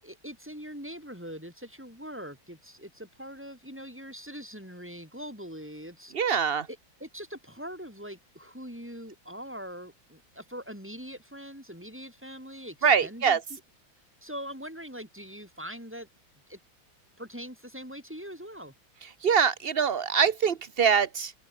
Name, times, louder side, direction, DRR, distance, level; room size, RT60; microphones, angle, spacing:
voice 1, 0.0-6.1 6.7-13.6 14.2-16.1 16.5-16.6 17.2-18.7, equal, 5° right, 7.7 m, -42 dB
voice 2, 6.1-6.7 12.8-13.4 19.2-21.3, right 7 dB, 60° right, 0.6 m, -24 dB
open air
omnidirectional pair, 2.3 m